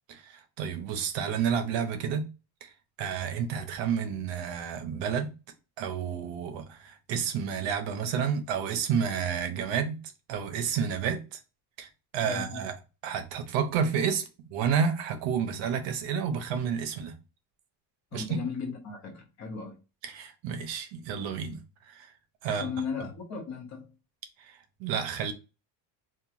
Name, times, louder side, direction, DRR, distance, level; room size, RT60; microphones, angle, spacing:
voice 1, 0.1-2.3 2.6-2.7 3.0-5.3 5.8-10.0 10.3-11.4 11.8-12.8 13.0-17.2 18.1-18.4 20.0-21.6 21.9-22.1 22.4-22.7 24.4-25.3, right 7 dB, 70° right, 0.7 m, -30 dB
voice 2, 12.2-12.6 18.1-19.8 22.4-23.9, left 5 dB, 35° left, 0.7 m, -36 dB
2.9 x 2.3 x 2.4 m
cardioid pair, 180°, 47 cm